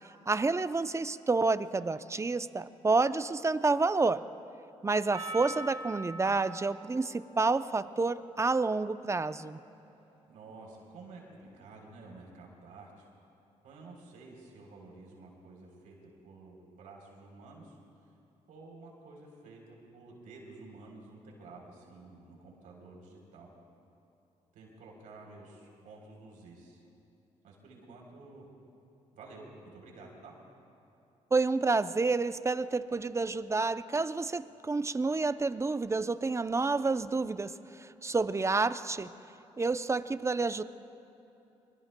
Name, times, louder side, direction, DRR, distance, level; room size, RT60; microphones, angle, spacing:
voice 1, 0.3-4.3 4.8-9.6 31.3-39.1 39.6-40.6, right 3 dB, 20° right, 13 dB, 0.5 m, -29 dB
Percussion, 5.1-9.6, right 2 dB, 40° right, 2.4 m, -44 dB
voice 2, 10.3-13.1 13.6-17.8 18.5-19.6 19.9-23.5 24.5-26.8 27.4-28.5 29.1-30.3, right 3 dB, 85° right, -1 dB, 3.5 m, -51 dB
24.5 x 22.0 x 2.2 m, 2.9 s
supercardioid pair, 65°, 13 cm